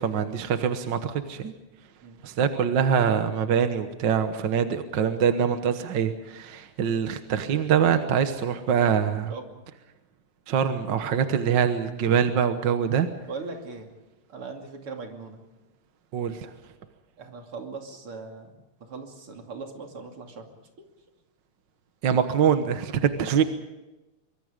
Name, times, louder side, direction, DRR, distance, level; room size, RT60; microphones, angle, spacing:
voice 1, 0.0-1.5 2.2-9.3 10.5-13.1 16.1-16.5 22.0-23.4, right 7 dB, 60° right, 8 dB, 1.8 m, -24 dB
voice 2, 9.3-9.7 13.3-13.9 14.3-15.4 17.2-20.9 23.3-23.4, right 4 dB, 80° right, 3 dB, 3.6 m, -40 dB
24.5 x 24.0 x 5.2 m, 1.0 s
omnidirectional pair, 2.4 m